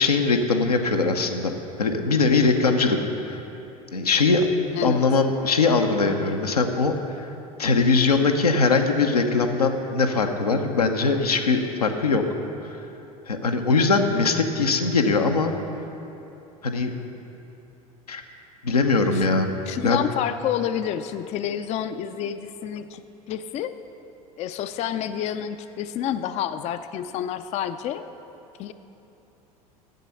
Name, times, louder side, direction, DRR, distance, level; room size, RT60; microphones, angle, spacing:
voice 1, 0.0-3.4 3.9-4.5 4.8-7.3 7.6-12.2 12.7-12.8 13.3-15.5 16.6-16.9 18.1-18.2 18.6-19.6 19.8-20.0, left 4 dB, 90° left, 3 dB, 0.7 m, -21 dB
voice 2, 19.7-23.7 24.4-28.0 28.6-28.7, left 10 dB, 35° left, 11 dB, 0.4 m, -29 dB
9.3 x 7.5 x 6.7 m, 3.0 s
figure-of-eight pair, 75°, 19 cm